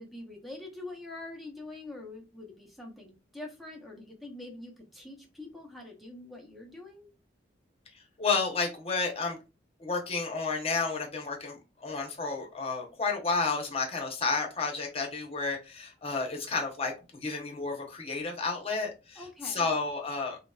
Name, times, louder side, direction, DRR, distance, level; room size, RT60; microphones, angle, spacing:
voice 1, 0.0-7.1 19.2-19.7, left 2 dB, ahead, 1 dB, 0.7 m, -44 dB
voice 2, 7.9-9.4 9.8-20.4, left 4 dB, 35° left, 1 dB, 0.8 m, -31 dB
2.8 x 2.8 x 2.3 m, 0.28 s
head